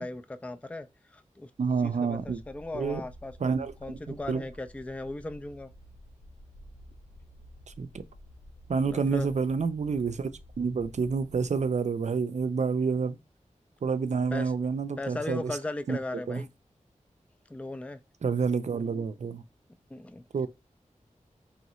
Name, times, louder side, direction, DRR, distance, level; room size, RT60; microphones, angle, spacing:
voice 1, 0.0-1.5 1.8-5.7 8.8-9.3 14.3-14.5 15.0-16.5 17.5-18.0 19.9-20.2, left 2 dB, 10° left, 0.3 m, -37 dB
voice 2, 1.6-2.4 2.7-3.0 3.4-4.4 7.8-8.0 8.7-10.3 10.6-13.2 13.8-15.6 15.9-16.0 16.3-16.4 18.2-19.4 20.3-20.5, right 5 dB, 60° right, 0.4 m, -28 dB
sound 1, 2.1-11.6, equal, 90° left, 0.7 m, -51 dB
3.8 x 3.1 x 3.0 m
wide cardioid pair, 80°, 13 cm